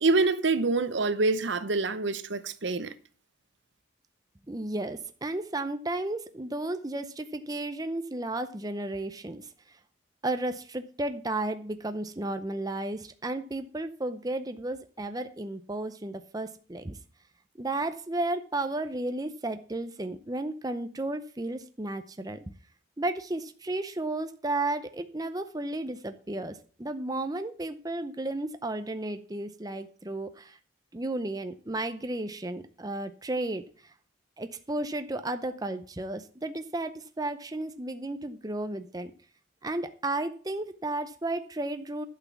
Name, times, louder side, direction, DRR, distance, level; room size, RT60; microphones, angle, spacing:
voice 1, 0.0-2.9, right 3 dB, 65° right, 0.8 m, -26 dB
voice 2, 4.5-9.8 10.2-17.0 17.6-22.4 23.0-30.6 30.9-33.9 34.4-39.1 39.6-42.1, right 2 dB, 20° right, 0.6 m, -33 dB
11.5 x 6.2 x 7.1 m
head